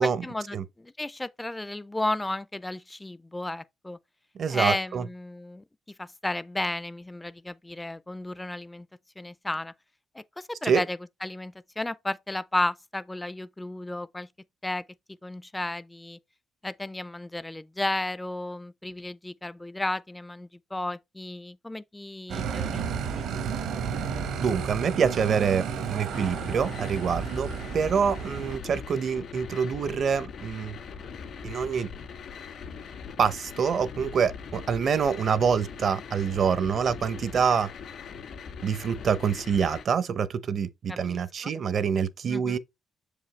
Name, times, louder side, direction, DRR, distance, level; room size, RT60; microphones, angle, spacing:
voice 1, 0.0-4.0 4.5-5.6 6.0-8.9 9.2-9.7 10.1-14.3 14.6-14.8 15.2-16.2 16.6-23.3 40.9-41.5 42.3-42.6, left 2 dB, 10° left, 0.4 m, -33 dB
voice 2, 4.4-5.1 10.6-10.8 24.4-27.5 27.7-30.8 31.4-31.9 33.2-37.7 38.6-42.6, right 6 dB, 55° right, 0.7 m, -26 dB
sound 1, 22.3-28.6, right 6 dB, 80° right, 1.1 m, -32 dB
sound 2, 26.1-39.8, left 6 dB, 65° left, 2.1 m, -41 dB
7.0 x 5.0 x 3.2 m
cardioid pair, 90°, 0 cm